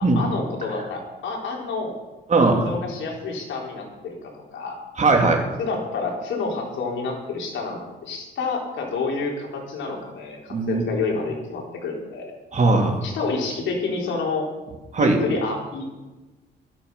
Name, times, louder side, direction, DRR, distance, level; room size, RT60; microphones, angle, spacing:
voice 1, 0.2-1.9 2.6-4.8 5.6-12.3 13.0-14.5 15.0-16.0, left 4 dB, 70° left, -1 dB, 4.1 m, -29 dB
voice 2, 2.3-2.6 5.0-5.4 10.5-10.8 12.5-13.0 14.9-15.2, right 3 dB, 35° right, 2 dB, 3.0 m, -19 dB
13.0 x 11.5 x 5.6 m, 1.2 s
cardioid pair, 90°, 20 cm